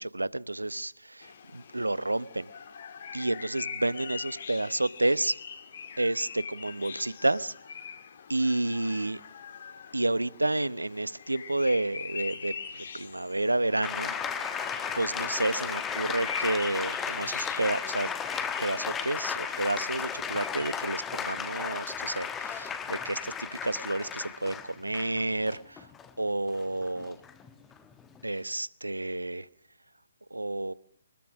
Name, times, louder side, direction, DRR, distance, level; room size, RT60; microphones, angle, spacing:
voice 1, 0.0-2.5 3.1-5.4 6.0-7.5 8.3-9.2 9.9-14.1 14.9-18.1 18.6-25.9 26.2-27.2 28.2-29.5 30.3-30.7, right 2 dB, 80° right, 19 dB, 0.8 m, -30 dB
sound 1, 1.2-19.9, left 6 dB, 45° left, 2.0 m, -43 dB
sound 2, 12.3-17.0 17.4-18.0 18.2-18.9 19.4-19.9 20.3-21.0, left 2 dB, 70° left, 4.6 m, -48 dB
sound 3, 13.8-28.3, left 7 dB, 10° left, 1.2 m, -34 dB
24.5 x 20.5 x 6.2 m, 0.64 s
figure-of-eight pair, 135°, 0 cm